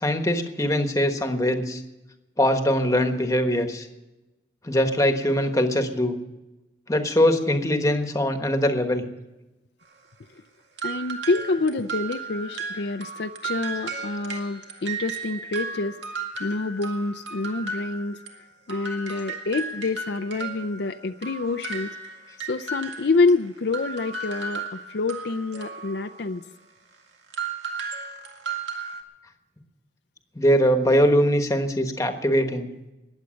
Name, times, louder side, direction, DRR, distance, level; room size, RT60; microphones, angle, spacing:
voice 1, 0.0-1.8 2.4-3.9 4.6-6.2 6.9-9.0 30.3-32.7, equal, 20° left, 6 dB, 1.3 m, -22 dB
voice 2, 10.8-16.0 16.4-18.2 18.7-22.0 22.4-26.4, left 3 dB, 65° left, 6 dB, 0.6 m, -27 dB
sound 1, 10.8-18.4 18.7-26.3 27.3-29.0, right 4 dB, 80° right, 2.0 m, -35 dB
20.5 x 8.3 x 6.4 m, 1.0 s
head